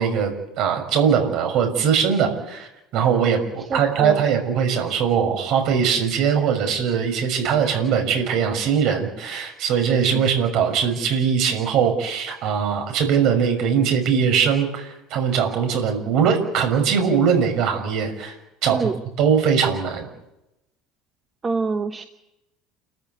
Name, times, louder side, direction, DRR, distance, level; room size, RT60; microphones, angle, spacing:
voice 1, 0.0-18.3 18.6-18.9 19.2-20.1, right 7 dB, 45° right, 5 dB, 6.1 m, -21 dB
voice 2, 3.7-4.2 18.7-19.0 21.4-22.0, right 4 dB, 15° right, 7 dB, 1.0 m, -26 dB
29.0 x 14.5 x 9.5 m, 0.92 s
cardioid pair, 170°, 0 cm